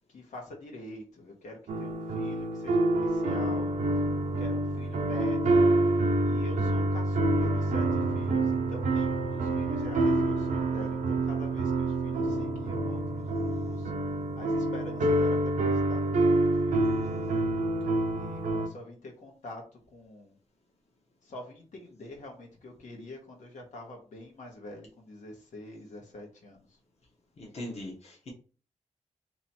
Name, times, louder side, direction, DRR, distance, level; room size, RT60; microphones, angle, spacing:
voice 1, 0.1-3.7 4.4-13.9 14.4-16.9 18.1-20.3 21.2-26.8, left 1 dB, 85° left, 0 dB, 1.3 m, -45 dB
sound 1, 1.7-18.7, right 2 dB, 85° right, 0.6 m, -27 dB
voice 2, 27.4-28.3, left 1 dB, 55° left, -2 dB, 1.1 m, -40 dB
3.0 x 2.9 x 4.2 m, 0.38 s
wide cardioid pair, 140°, 13 cm